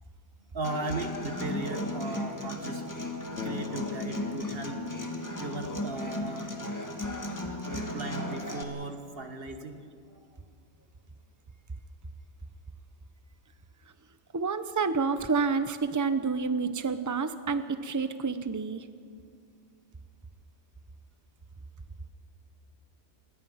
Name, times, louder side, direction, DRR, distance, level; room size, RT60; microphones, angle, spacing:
voice 1, 0.5-2.9 3.4-4.9 5.4-6.5 7.7-10.4, right 2 dB, 55° right, 7 dB, 1.8 m, -37 dB
Human voice / Acoustic guitar, 0.6-8.6, left 1 dB, 15° left, 1.8 m, -35 dB
Bass guitar, 3.4-7.7, left 8 dB, 70° left, 1.1 m, -43 dB
voice 2, 14.3-18.9, right 4 dB, 20° right, 11 dB, 0.8 m, -29 dB
28.0 x 21.0 x 5.7 m, 2.2 s
omnidirectional pair, 1.2 m